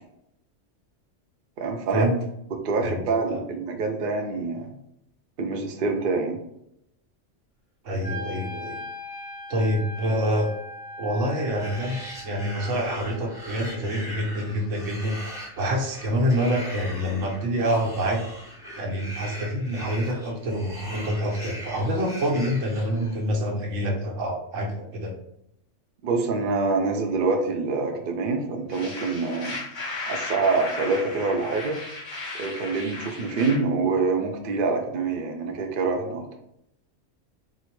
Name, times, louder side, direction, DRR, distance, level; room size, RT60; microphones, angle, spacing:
voice 1, 1.6-2.1 2.6-4.7 5.4-6.4 26.0-29.6 30.1-31.8 32.4-36.2, right 4 dB, 60° right, 3 dB, 0.6 m, -26 dB
voice 2, 7.8-8.8 9.5-10.5 11.0-15.2 15.6-18.2 18.8-25.1, equal, 85° right, 1 dB, 1.1 m, -26 dB
Wind instrument woodwind instrument, 8.0-14.1, left 1 dB, 35° left, 0.7 m, -40 dB
sound 1, 11.3-23.4, equal, 5° right, 0.8 m, -40 dB
sound 2, 28.7-33.6, left 3 dB, 70° left, 1.4 m, -35 dB
3.6 x 2.1 x 3.0 m, 0.77 s
omnidirectional pair, 1.3 m